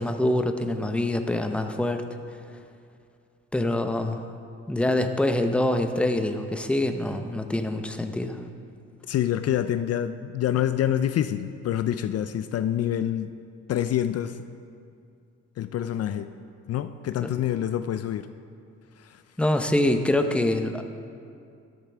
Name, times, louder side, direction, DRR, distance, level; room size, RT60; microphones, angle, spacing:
voice 1, 0.0-2.0 3.5-4.2 4.7-8.4 17.2-17.3 19.4-20.9, left 1 dB, 5° left, 6 dB, 0.7 m, -25 dB
voice 2, 9.1-13.3 13.7-14.4 15.6-16.3 16.7-18.3 19.0-19.2, left 11 dB, 55° left, 11 dB, 0.4 m, -26 dB
13.0 x 10.5 x 3.4 m, 2.4 s
cardioid pair, 90°, 30 cm